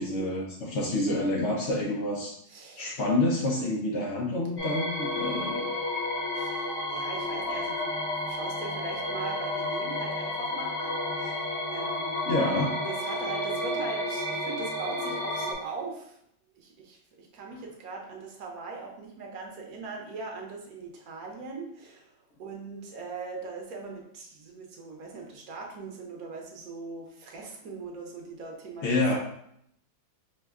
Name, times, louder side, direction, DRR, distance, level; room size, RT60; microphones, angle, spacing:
voice 1, 0.0-2.3 2.8-5.7 12.3-12.7 28.8-29.2, left 2 dB, 70° left, -3 dB, 0.6 m, -28 dB
voice 2, 2.5-2.9 6.3-12.3 12.8-16.2 16.5-28.9, right 4 dB, 60° right, 0 dB, 1.1 m, -40 dB
sound 1, 4.6-15.5, left 1 dB, 50° left, 0.9 m, -31 dB
5.2 x 2.2 x 3.5 m, 0.72 s
omnidirectional pair, 2.0 m